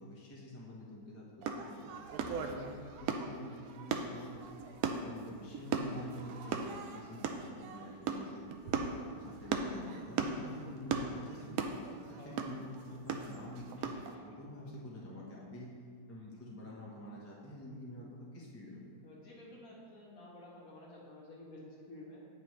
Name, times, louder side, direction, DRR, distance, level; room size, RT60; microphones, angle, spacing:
voice 1, 0.0-1.9 2.4-2.7 3.0-4.6 5.0-15.7 16.1-18.9, equal, 10° left, -5 dB, 0.6 m, -48 dB
sound 1, 1.4-14.1, right 5 dB, 70° right, 0.9 m, -38 dB
voice 2, 12.1-12.4 13.8-14.2 14.6-14.7 19.0-22.3, left 1 dB, 55° left, -3 dB, 1.4 m, -52 dB
8.5 x 5.6 x 3.1 m, 2.1 s
omnidirectional pair, 1.9 m